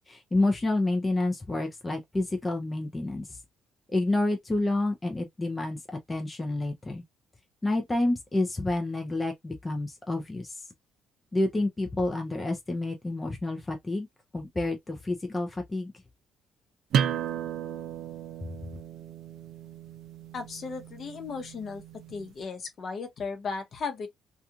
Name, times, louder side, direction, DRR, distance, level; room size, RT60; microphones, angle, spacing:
voice 1, 0.0-3.4 3.9-5.8 6.1-7.0 7.6-10.7 11.3-14.1 14.3-15.9, left 2 dB, 15° left, 0.5 m, -29 dB
sound 1, 16.9-22.3, right 9 dB, 70° right, 0.5 m, -34 dB
voice 2, 20.3-21.8 22.1-24.1, left 4 dB, 45° left, 0.8 m, -36 dB
2.9 x 2.3 x 2.3 m
cardioid pair, 135°, 0 cm